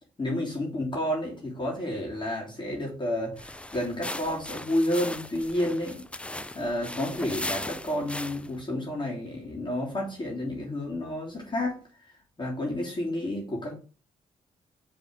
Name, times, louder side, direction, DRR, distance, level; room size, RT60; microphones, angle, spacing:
voice 1, 0.2-6.1 6.5-13.8, left 1 dB, 30° left, 3.1 m, -30 dB
sound 1, 3.3-8.6, left 1 dB, 10° left, 0.5 m, -38 dB
5.4 x 4.2 x 5.0 m
supercardioid pair, 50°, 15 cm